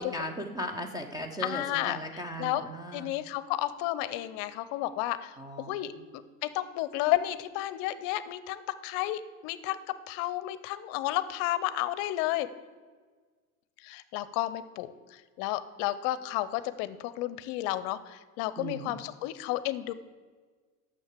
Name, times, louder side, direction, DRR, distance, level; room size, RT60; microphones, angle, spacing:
voice 1, 0.0-3.1 5.4-6.1 18.6-19.0, equal, 10° right, 4 dB, 0.3 m, -38 dB
voice 2, 1.4-2.0 2.4-2.7 2.9-9.8 10.1-12.5 13.8-19.9, left 15 dB, 50° left, 15 dB, 0.6 m, -32 dB
6.6 x 6.3 x 7.4 m, 1.5 s
hypercardioid pair, 105°, 43 cm